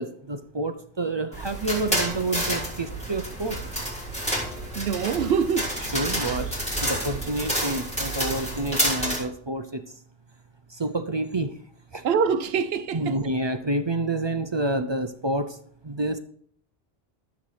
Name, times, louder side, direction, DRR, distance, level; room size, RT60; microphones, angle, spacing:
voice 1, 0.0-3.6 5.8-9.8 10.8-11.5 11.9-12.0 12.9-15.6 15.8-16.2, right 2 dB, 35° right, 0.5 m, -28 dB
sound 1, 1.3-9.2, right 1 dB, 5° left, 3.3 m, -29 dB
voice 2, 4.8-5.8 12.0-13.2, right 6 dB, 80° right, 0.9 m, -24 dB
14.0 x 7.2 x 3.2 m
omnidirectional pair, 1.0 m